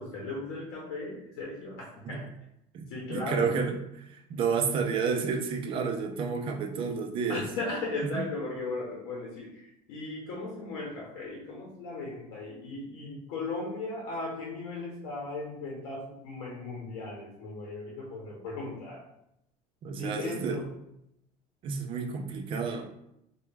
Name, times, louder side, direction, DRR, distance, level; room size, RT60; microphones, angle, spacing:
voice 1, 0.0-2.2 2.9-3.6 7.3-19.1 20.0-20.7, left 2 dB, 85° left, -2 dB, 0.8 m, -37 dB
voice 2, 3.1-3.8 4.3-7.4 19.8-20.6 21.6-22.9, right 5 dB, 35° right, 3 dB, 0.4 m, -30 dB
3.3 x 2.3 x 3.2 m, 0.79 s
cardioid pair, 175°, 15 cm